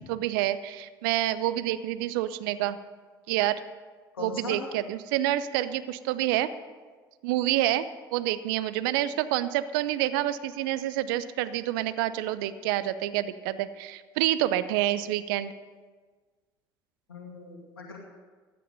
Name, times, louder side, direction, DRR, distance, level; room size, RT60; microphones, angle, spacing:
voice 1, 0.1-2.8 3.3-3.6 4.2-6.5 7.2-15.5, right 13 dB, 65° right, 14 dB, 0.7 m, -28 dB
voice 2, 4.1-4.6 17.1-18.0, left 3 dB, 85° left, -1 dB, 2.4 m, -39 dB
15.5 x 11.5 x 5.4 m, 1.4 s
figure-of-eight pair, 60°, 12 cm